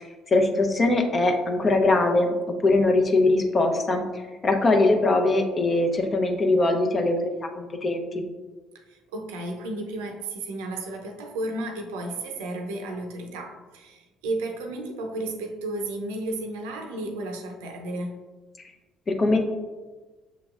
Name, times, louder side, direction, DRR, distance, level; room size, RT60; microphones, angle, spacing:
voice 1, 0.3-2.3 2.6-4.0 4.4-8.3 19.1-19.4, left 2 dB, 40° left, 4 dB, 0.7 m, -21 dB
voice 2, 8.9-18.2, right 2 dB, 85° right, 3 dB, 0.5 m, -33 dB
7.0 x 3.0 x 2.4 m, 1.3 s
hypercardioid pair, 60°, 0 cm